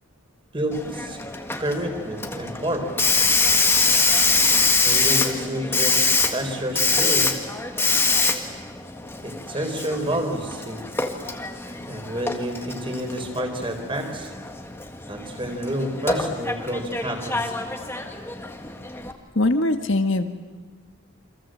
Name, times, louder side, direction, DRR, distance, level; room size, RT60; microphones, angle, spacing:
voice 1, 0.5-1.2 1.6-3.1 4.9-7.3 9.2-10.9 11.9-14.3 15.1-17.6, right 1 dB, 25° right, 4 dB, 4.3 m, -29 dB
Hiss, 0.7-19.1, left 3 dB, 10° left, 1.7 m, -24 dB
voice 2, 19.4-20.3, left 2 dB, 60° left, 7 dB, 1.7 m, -21 dB
28.5 x 26.0 x 7.8 m, 1.5 s
head